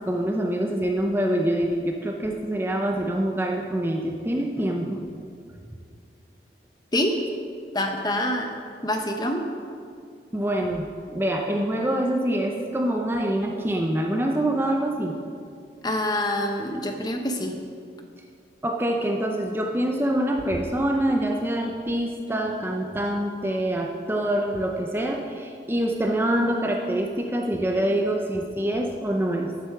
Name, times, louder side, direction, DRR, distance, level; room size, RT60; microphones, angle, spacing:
voice 1, 0.1-5.0 10.3-15.2 18.6-29.5, right 1 dB, 15° right, 1 dB, 0.6 m, -25 dB
voice 2, 7.7-8.5 8.8-9.4 15.8-17.6, left 1 dB, 20° left, 4 dB, 0.8 m, -26 dB
10.0 x 7.6 x 5.8 m, 2.2 s
head